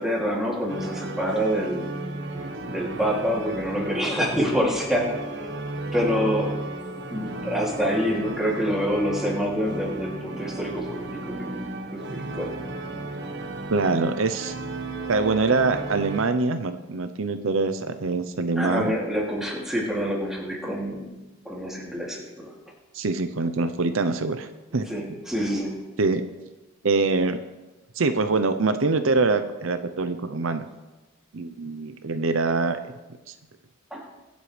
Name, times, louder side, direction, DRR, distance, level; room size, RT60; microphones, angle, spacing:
voice 1, 0.0-1.9 2.7-5.5 5.9-6.6 7.1-12.5 18.6-21.2 21.4-22.5 24.9-25.9 33.9-34.0, equal, ahead, -4 dB, 2.7 m, -27 dB
sound 1, 0.7-16.3, right 2 dB, 55° right, 1.2 m, -34 dB
voice 2, 13.7-14.5 15.1-18.9 22.9-24.8 26.0-26.2 26.8-27.4 28.0-30.7 31.3-32.8 33.3-33.4, right 3 dB, 75° right, 9 dB, 0.7 m, -24 dB
23.5 x 8.1 x 3.3 m, 1.1 s
head